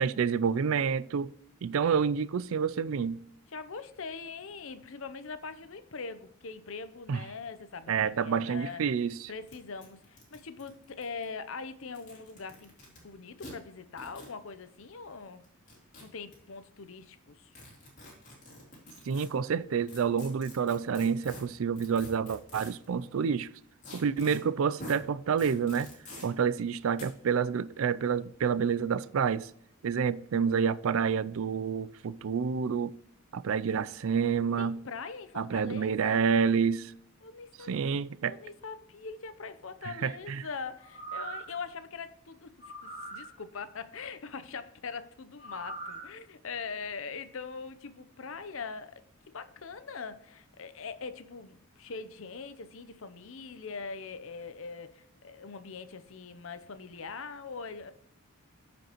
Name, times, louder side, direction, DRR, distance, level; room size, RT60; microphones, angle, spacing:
voice 1, 0.0-1.3 1.6-3.2 7.1-7.2 7.9-9.3 19.1-23.5 23.9-25.9 26.2-29.5 29.8-32.9 33.3-34.8 35.4-36.9 37.7-38.3 39.8-40.4, right 6 dB, 70° right, 0.4 m, -28 dB
voice 2, 3.5-8.8 9.3-15.4 16.0-17.5 34.6-36.3 37.2-37.7 38.2-42.5 42.8-57.9, left 5 dB, 65° left, 0.7 m, -42 dB
sound 1, 8.7-8.8 9.0-9.1 9.5-9.6 9.8-11.2 11.8-13.0 13.4-13.5 14.0-14.3 15.4-16.3 17.5-19.3 19.9-22.9 23.8-24.4 24.8-25.0 25.4-26.3 27.0-27.1, left 1 dB, 35° left, 3.1 m, -47 dB
sound 2, 40.8-41.6 42.6-43.3 45.4-46.1 46.5-46.6, right 3 dB, 30° right, 3.3 m, -41 dB
14.5 x 5.1 x 3.0 m
head